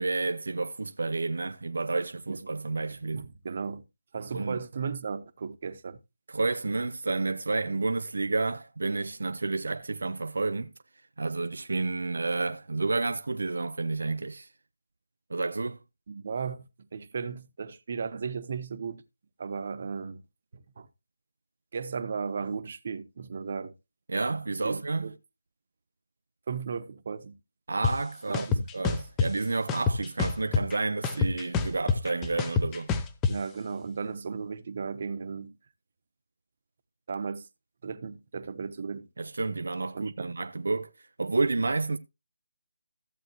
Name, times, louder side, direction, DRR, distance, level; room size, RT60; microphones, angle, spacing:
voice 1, 0.0-3.3 4.3-4.6 6.3-10.7 11.2-14.5 15.3-15.8 24.1-25.1 27.7-32.9 39.2-40.9 41.2-42.0, right 3 dB, 70° right, 0.6 m, -30 dB
voice 2, 3.1-3.8 4.1-6.0 16.1-19.0 19.4-20.2 20.5-20.9 21.7-23.7 24.6-25.1 26.5-27.4 28.3-28.7 33.3-35.6 37.1-37.5 37.8-39.1 39.9-40.3, right 5 dB, 45° right, 1.1 m, -35 dB
sound 1, 27.8-27.9 28.3-29.3 29.7-30.8 31.0-33.3, left 5 dB, 15° left, 0.8 m, -26 dB
14.5 x 7.8 x 3.0 m
figure-of-eight pair, 160°, 0 cm